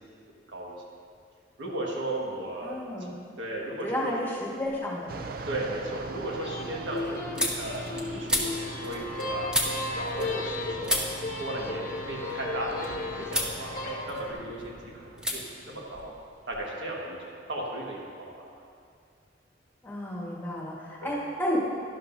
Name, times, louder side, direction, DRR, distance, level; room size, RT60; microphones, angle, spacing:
voice 1, 1.6-3.1 3.4-4.2 5.5-9.5 9.9-11.0 11.4-16.2 16.5-18.3 21.0-21.2, right 1 dB, 85° right, -2 dB, 1.6 m, -36 dB
voice 2, 2.6-3.1 3.8-5.1 19.8-21.6, left 1 dB, 10° left, -5 dB, 1.6 m, -32 dB
sound 1, 4.6-5.1 5.5-10.6 10.8-12.9 13.3-13.6 13.9-14.7 15.2-15.4 15.6-16.7, left 1 dB, 5° right, 0.9 m, -33 dB
Fixed-wing aircraft airplane, 5.1-15.9, right 3 dB, 50° right, 0.4 m, -42 dB
sound 2, 6.3-14.3, left 2 dB, 50° left, 0.9 m, -35 dB
11.5 x 11.5 x 2.7 m, 2.3 s
head